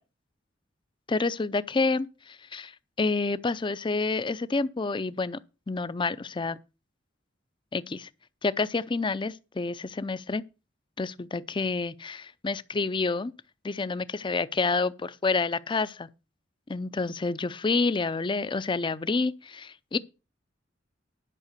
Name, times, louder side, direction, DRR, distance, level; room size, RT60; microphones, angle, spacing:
voice 1, 1.1-2.1 2.4-5.4 5.7-6.6 7.7-8.1 8.4-10.4 11.0-13.3 13.6-16.1 16.7-20.0, left 3 dB, 25° left, 0.5 m, -28 dB
11.0 x 5.7 x 6.6 m
head